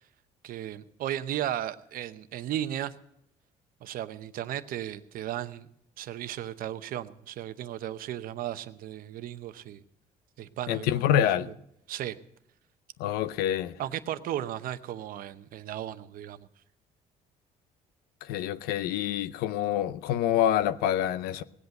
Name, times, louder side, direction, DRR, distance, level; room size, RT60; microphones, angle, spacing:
voice 1, 0.4-2.9 3.8-5.7 6.0-9.8 10.4-10.9 11.2-11.5 11.9-12.2 13.8-16.5, right 12 dB, 70° right, 0.8 m, -35 dB
voice 2, 10.7-11.5 13.0-13.7 18.2-21.4, left 11 dB, 90° left, 0.6 m, -26 dB
18.5 x 8.2 x 6.5 m
cardioid pair, 95°, 15 cm